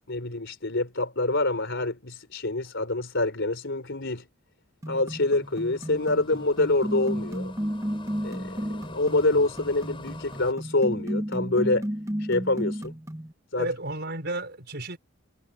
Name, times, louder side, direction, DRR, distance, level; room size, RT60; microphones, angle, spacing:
voice 1, 0.1-4.3 4.9-7.5 8.2-8.6 8.9-11.9 12.2-12.9 13.5-13.7, left 2 dB, 65° left, 3.9 m, -26 dB
sound 1, 4.8-13.3, equal, 15° right, 1.5 m, -33 dB
sound 2, 5.4-10.5, left 3 dB, 25° left, 4.4 m, -46 dB
voice 2, 13.6-15.0, right 2 dB, 55° right, 5.4 m, -32 dB
head